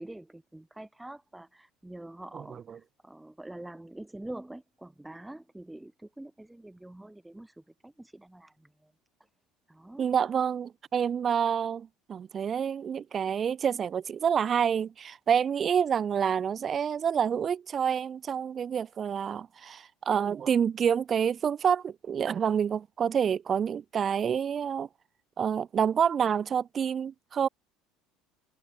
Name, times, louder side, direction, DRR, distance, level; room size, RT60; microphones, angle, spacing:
voice 1, 0.0-8.9 9.7-10.1, right 1 dB, 10° right, 6.0 m, -45 dB
voice 2, 10.0-24.9 25.4-27.5, right 7 dB, 40° right, 2.6 m, -28 dB
hypercardioid pair, 65°, 0 cm